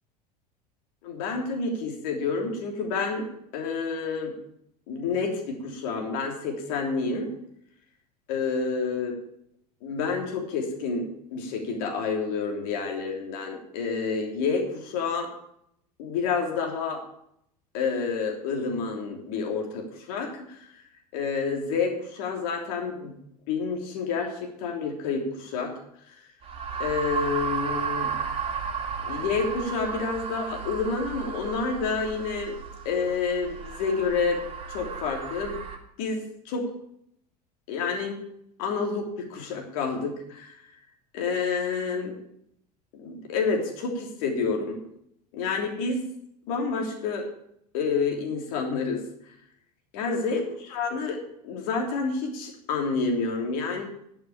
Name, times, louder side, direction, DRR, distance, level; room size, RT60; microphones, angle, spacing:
voice 1, 1.0-3.3 3.5-4.3 4.9-7.3 8.3-9.2 9.8-15.3 16.0-17.0 17.7-20.7 21.1-23.1 23.5-25.7 26.8-28.1 29.0-32.5 32.8-34.4 34.7-35.6 36.0-36.7 37.7-38.2 38.6-40.5 41.1-42.1 42.9-44.8 45.3-46.0 46.5-47.3 47.7-49.0 49.9-53.8, left 4 dB, 55° left, 2 dB, 3.1 m, -29 dB
sound 1, 26.4-35.8, right 6 dB, 25° right, 2.6 m, -33 dB
10.5 x 6.8 x 8.7 m, 0.73 s
figure-of-eight pair, 75°, 21 cm